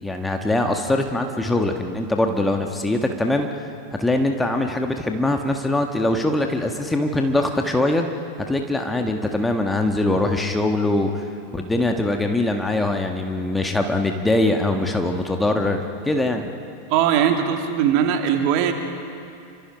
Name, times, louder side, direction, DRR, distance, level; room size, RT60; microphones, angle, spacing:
voice 1, 0.0-3.7 4.0-8.1 8.4-11.2 11.5-16.5, left 2 dB, 5° left, 4 dB, 1.6 m, -22 dB
voice 2, 16.9-18.7, right 9 dB, 45° right, 4 dB, 2.5 m, -20 dB
29.5 x 25.5 x 5.2 m, 2.5 s
figure-of-eight pair, 90°, 0 cm